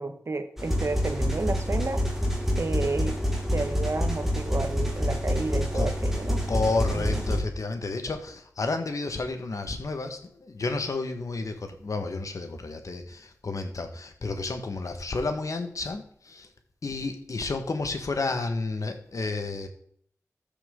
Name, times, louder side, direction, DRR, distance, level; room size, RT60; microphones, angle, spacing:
voice 1, 0.0-2.0 2.6-3.2 3.5-6.5 6.9-7.2, right 3 dB, 50° right, 9 dB, 1.0 m, -31 dB
sound 1, 0.6-7.4, equal, 5° right, 2.6 m, -27 dB
voice 2, 6.5-16.5 16.8-19.7, left 3 dB, 70° left, 6 dB, 1.4 m, -31 dB
13.5 x 6.9 x 3.7 m, 0.63 s
wide cardioid pair, 85°, 6 cm